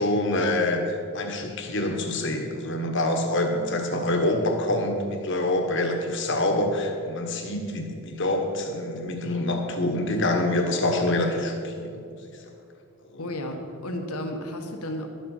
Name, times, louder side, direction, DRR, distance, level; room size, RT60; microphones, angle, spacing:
voice 1, 0.0-12.0 13.1-13.2, left 1 dB, 55° left, 4 dB, 1.3 m, -26 dB
voice 2, 13.2-15.1, left 1 dB, 85° left, 4 dB, 1.3 m, -33 dB
12.0 x 7.7 x 5.5 m, 2.5 s
head